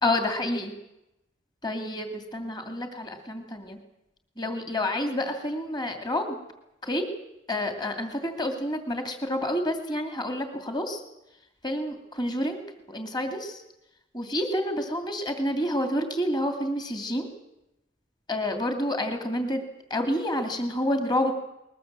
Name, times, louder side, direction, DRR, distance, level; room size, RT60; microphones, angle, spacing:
voice 1, 0.0-0.8 1.6-3.8 4.4-6.4 6.8-7.1 7.5-11.0 11.6-12.6 12.9-13.6 14.1-17.3 18.3-19.6 19.9-21.3, left 1 dB, 20° left, 5 dB, 2.8 m, -29 dB
21.5 x 21.0 x 7.6 m, 0.89 s
head